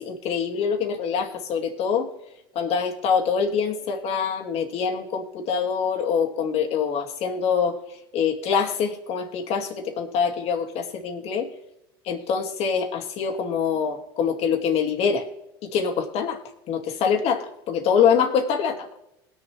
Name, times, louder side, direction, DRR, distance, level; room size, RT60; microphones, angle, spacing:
voice 1, 0.0-2.1 2.6-7.8 8.1-11.5 12.1-15.2 15.6-16.4 16.7-18.9, left 6 dB, 50° left, 4 dB, 2.3 m, -24 dB
20.5 x 7.0 x 3.3 m, 0.88 s
hypercardioid pair, 100°, 13 cm